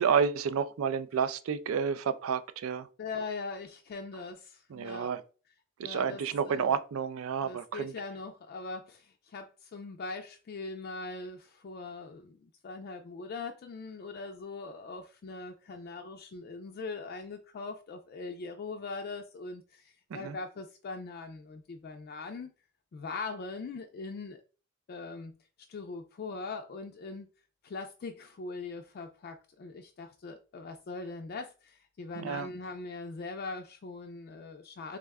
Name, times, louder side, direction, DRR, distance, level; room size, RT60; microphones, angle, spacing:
voice 1, 0.0-2.9 4.7-5.2 5.8-7.9 20.1-20.4 32.2-32.5, right 6 dB, 80° right, 0.4 m, -30 dB
voice 2, 3.0-5.1 5.8-6.8 7.4-22.5 22.9-24.4 24.9-25.4 25.7-27.3 27.6-35.0, left 3 dB, 50° left, 0.3 m, -41 dB
3.5 x 2.1 x 3.4 m
head